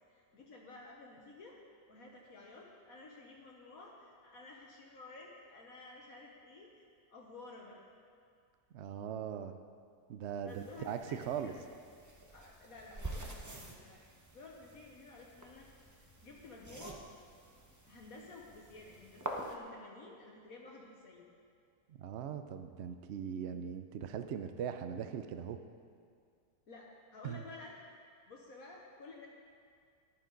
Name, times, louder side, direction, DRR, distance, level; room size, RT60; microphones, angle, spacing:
voice 1, 0.1-1.6 1.9-7.8 10.4-11.6 12.3-14.1 14.3-15.7 16.2-17.0 17.8-21.3 26.7-27.9 28.3-29.3, left 3 dB, 60° left, -2 dB, 1.4 m, -53 dB
voice 2, 8.7-9.6 10.1-11.5 21.9-25.6 27.2-27.4, right 8 dB, 75° right, 8 dB, 0.6 m, -40 dB
sound 1, 10.5-19.6, right 1 dB, 15° right, 0.6 m, -48 dB
14.0 x 11.0 x 3.9 m, 2.2 s
omnidirectional pair, 1.8 m